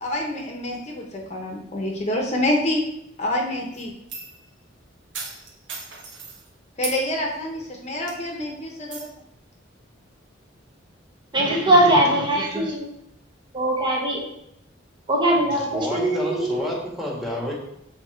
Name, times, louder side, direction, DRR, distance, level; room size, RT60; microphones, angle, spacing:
voice 1, 0.0-2.8 3.2-3.9 6.8-9.1, left 1 dB, 35° left, 0 dB, 1.0 m, -27 dB
sound 1, 3.7-4.4 5.1-6.4 6.8-7.0 7.5-7.7 8.1-8.4 8.9-9.0, right 4 dB, 70° right, 1.3 m, -36 dB
voice 2, 11.3-12.9 13.5-14.2 15.1-16.7, right 1 dB, 25° right, -2 dB, 1.1 m, -20 dB
voice 3, 15.7-17.5, equal, ahead, -3 dB, 1.4 m, -29 dB
7.0 x 3.6 x 4.5 m, 0.78 s
head